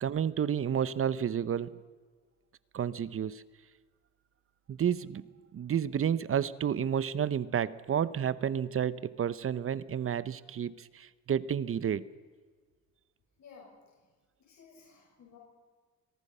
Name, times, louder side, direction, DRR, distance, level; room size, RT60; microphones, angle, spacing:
voice 1, 0.0-1.8 2.7-3.4 4.7-5.2 5.5-12.1, right 8 dB, 45° right, 16 dB, 0.9 m, -31 dB
voice 2, 13.4-14.0 14.4-15.4, left 5 dB, 65° left, -2 dB, 6.4 m, -55 dB
23.5 x 23.0 x 5.6 m, 1.4 s
cardioid pair, 90°, 30 cm